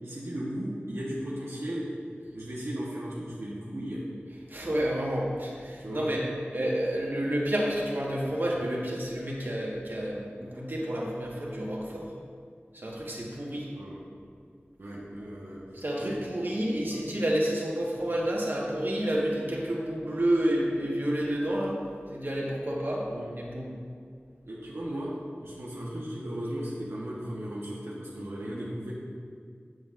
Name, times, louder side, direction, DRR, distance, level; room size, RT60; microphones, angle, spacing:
voice 1, 0.0-1.9 2.3-4.0 5.8-6.1 13.7-14.0 14.8-15.6 16.0-16.2 16.8-17.0 23.1-23.3 24.5-25.1 25.4-28.9, right 1 dB, 85° right, -6 dB, 1.0 m, -36 dB
voice 2, 4.5-6.2 6.5-12.1 12.7-13.7 15.7-21.8 22.1-23.1 23.4-23.7, right 1 dB, 50° right, -4 dB, 1.3 m, -29 dB
7.6 x 7.5 x 2.5 m, 2.2 s
wide cardioid pair, 55°, 4 cm